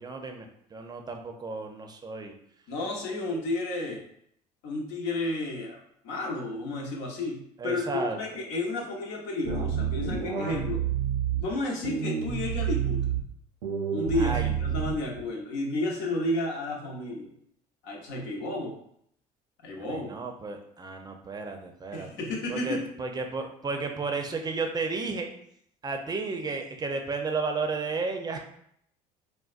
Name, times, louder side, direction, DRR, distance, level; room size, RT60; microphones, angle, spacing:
voice 1, 0.0-2.3 7.6-8.2 14.1-14.6 19.9-22.1 22.5-25.3 25.8-28.4, right 4 dB, 20° right, 4 dB, 0.6 m, -33 dB
voice 2, 2.7-4.0 4.6-10.8 11.4-13.2 13.9-17.3 17.8-18.8 19.6-20.1 21.9-22.9, left 2 dB, 70° left, 0 dB, 0.9 m, -32 dB
sound 1, 9.4-11.4 11.8-13.2 13.6-15.2, right 8 dB, 80° right, 0.5 m, -29 dB
3.9 x 2.1 x 2.5 m, 0.70 s
hypercardioid pair, 65°, 19 cm